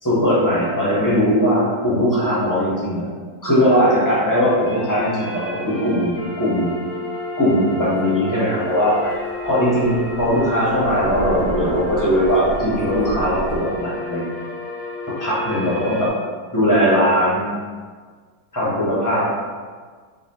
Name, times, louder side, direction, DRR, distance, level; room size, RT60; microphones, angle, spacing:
voice 1, 0.0-3.1 3.4-6.7 7.4-9.1 9.4-14.2 15.2-16.1 16.5-17.5 18.5-19.3, equal, 15° left, -8 dB, 0.7 m, -19 dB
sound 1, 3.7-16.1, left 2 dB, 80° left, 1.4 m, -31 dB
Thunder, 8.6-13.6, right 2 dB, 80° right, 0.5 m, -30 dB
4.9 x 2.4 x 2.8 m, 1.6 s
omnidirectional pair, 1.9 m